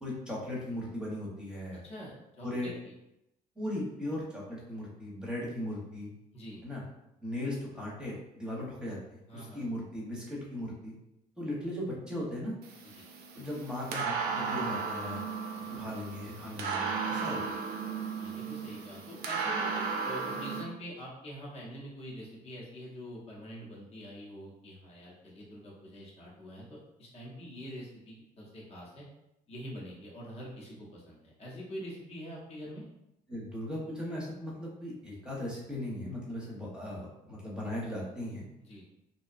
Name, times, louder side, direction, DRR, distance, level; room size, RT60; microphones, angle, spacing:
voice 1, 0.0-1.8 2.4-2.7 3.6-6.1 6.6-6.8 7.2-10.9 11.4-12.5 13.3-15.2 15.7-17.6 33.3-38.4, left 1 dB, 5° right, -5 dB, 0.9 m, -38 dB
voice 2, 1.7-2.9 6.3-6.6 9.3-9.7 13.0-13.1 18.2-29.0 29.5-32.8 38.6-38.8, equal, 35° left, -4 dB, 0.8 m, -45 dB
sound 1, 12.6-20.6, right 5 dB, 70° right, 0.5 m, -35 dB
2.6 x 2.2 x 2.4 m, 0.88 s
cardioid pair, 110°, 17 cm